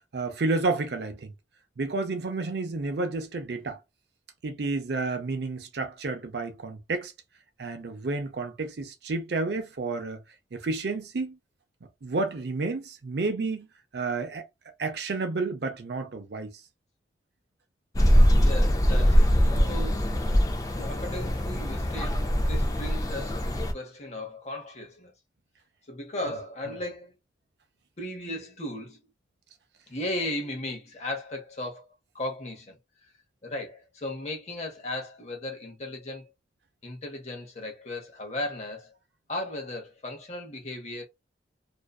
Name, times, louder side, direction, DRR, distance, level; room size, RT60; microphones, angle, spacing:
voice 1, 0.1-1.3 1.8-3.8 4.4-7.1 7.6-10.2 10.5-11.4 12.0-13.7 13.9-14.4 14.8-16.5, right 3 dB, 60° right, 0.5 m, -30 dB
sound 1, 18.0-23.7, equal, 20° left, 0.4 m, -22 dB
voice 2, 18.4-20.5 20.8-25.1 25.9-27.2 28.0-29.0 29.9-31.9 32.1-32.8 33.4-36.3 36.8-38.9 39.3-41.1, left 1 dB, 35° left, 0.8 m, -36 dB
2.5 x 2.2 x 2.2 m
head